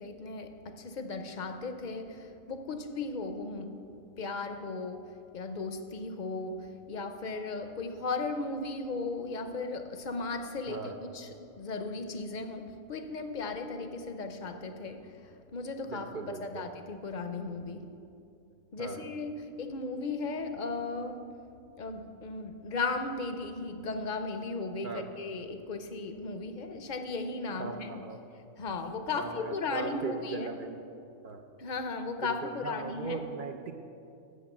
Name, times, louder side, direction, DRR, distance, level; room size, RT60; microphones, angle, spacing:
voice 1, 0.0-3.7 4.2-5.1 5.3-11.3 11.6-17.8 18.7-21.2 21.8-27.9 28.6-30.5 31.6-33.2, left 3 dB, 45° left, 7 dB, 0.6 m, -36 dB
voice 2, 10.7-11.0 15.8-16.7 18.8-19.1 24.8-25.1 27.6-28.2 29.1-30.8 31.2-31.5 32.2-33.7, right 4 dB, 60° right, 5 dB, 0.5 m, -39 dB
8.4 x 7.3 x 7.1 m, 2.6 s
omnidirectional pair, 1.4 m